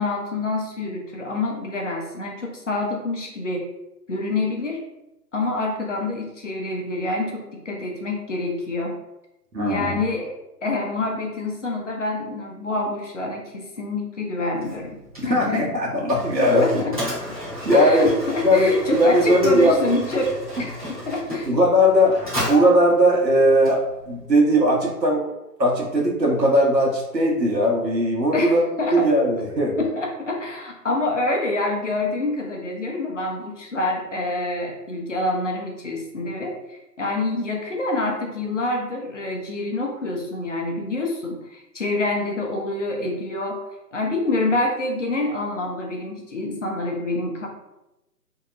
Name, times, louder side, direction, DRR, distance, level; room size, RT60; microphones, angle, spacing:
voice 1, 0.0-3.7 4.1-4.8 5.3-9.0 9.6-10.3 10.6-15.0 15.2-15.7 16.5-16.9 17.7-21.5 28.3-29.1 29.8-43.6 43.9-47.5, left 2 dB, 50° left, 0 dB, 0.6 m, -26 dB
voice 2, 9.5-10.0 15.2-16.8 17.6-18.1 18.4-19.7 21.5-22.2 22.5-25.3 25.6-28.7 28.9-29.8, equal, 85° right, -2 dB, 0.9 m, -19 dB
Mechanisms, 14.6-24.2, equal, 25° right, 0.7 m, -34 dB
2.7 x 2.0 x 2.4 m, 0.94 s
figure-of-eight pair, 150°, 49 cm